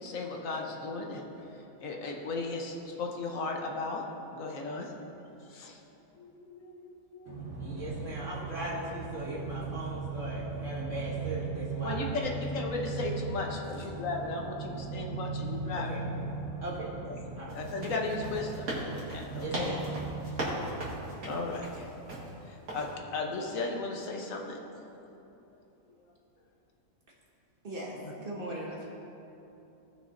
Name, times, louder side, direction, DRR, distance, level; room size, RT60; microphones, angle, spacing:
voice 1, 0.0-1.3 1.5-4.0 4.3-4.9 5.5-5.8 6.2-7.4 11.8-15.9 17.1-17.2 17.5-18.6 18.9-19.7 21.3-21.9 22.5-24.6, left 3 dB, 70° left, 1 dB, 1.3 m, -36 dB
voice 2, 7.3-18.6 19.3-20.2, right 3 dB, 60° right, -8 dB, 2.5 m, -36 dB
sound 1, 17.5-22.3 22.7-22.9, right 1 dB, 90° right, 2.4 m, -38 dB
voice 3, 27.6-28.9, right 1 dB, 40° right, -4 dB, 1.6 m, -38 dB
17.5 x 6.0 x 2.6 m, 2.9 s
omnidirectional pair, 1.5 m